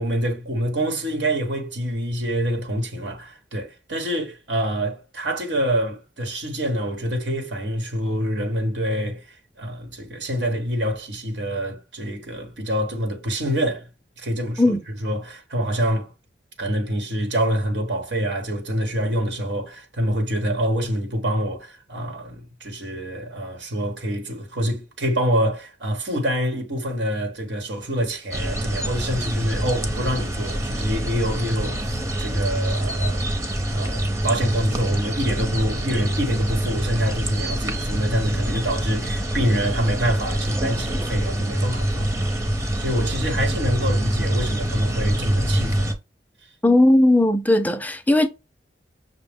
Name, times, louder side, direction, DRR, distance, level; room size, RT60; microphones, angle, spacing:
voice 1, 0.0-9.2 9.6-13.9 14.2-14.7 15.0-16.1 16.6-33.4 33.7-45.9, equal, 80° right, 1.1 m, -26 dB
sound 1, 28.3-45.9, right 1 dB, 15° right, 0.7 m, -25 dB
voice 2, 46.6-48.3, left 1 dB, 10° left, 0.4 m, -17 dB
6.1 x 2.1 x 3.5 m
head